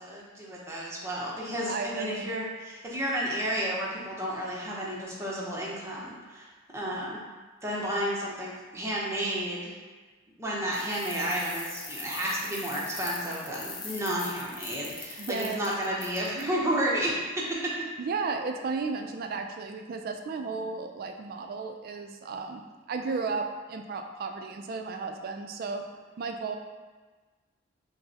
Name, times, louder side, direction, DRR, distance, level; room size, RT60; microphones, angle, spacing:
voice 1, 0.0-7.2 7.6-9.8 10.4-17.9, right 1 dB, 15° right, -5 dB, 0.6 m, -32 dB
voice 2, 1.7-2.3 15.2-15.7 18.0-25.9 26.2-26.6, right 4 dB, 50° right, 5 dB, 0.3 m, -34 dB
sound 1, 10.7-16.4, left 4 dB, 25° left, 0.4 m, -41 dB
5.5 x 2.0 x 2.8 m, 1.3 s
head